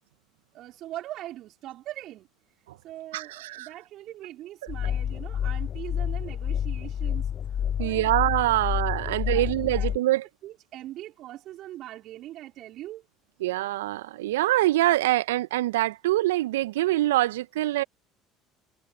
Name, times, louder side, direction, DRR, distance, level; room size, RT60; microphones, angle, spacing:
voice 1, 0.5-2.3 2.8-8.1 9.1-9.9 10.4-13.0, right 14 dB, 55° right, 3.8 m, -41 dB
voice 2, 3.1-3.7 7.8-10.3 13.4-17.8, right 16 dB, 75° right, 1.5 m, -24 dB
sound 1, 4.7-10.0, left 9 dB, 45° left, 1.4 m, -29 dB
figure-of-eight pair, 60°, 0 cm